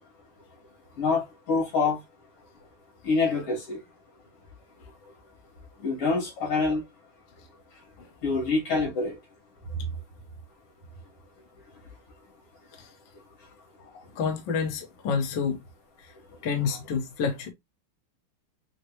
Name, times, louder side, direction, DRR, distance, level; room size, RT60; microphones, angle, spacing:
voice 1, 1.0-2.0 3.0-3.8 5.8-6.8 8.2-9.2, left 4 dB, 90° left, 3.1 m, -26 dB
voice 2, 14.0-15.6 16.0-16.1 16.4-17.5, left 5 dB, 60° left, 1.6 m, -29 dB
6.3 x 2.1 x 2.9 m
omnidirectional pair, 2.4 m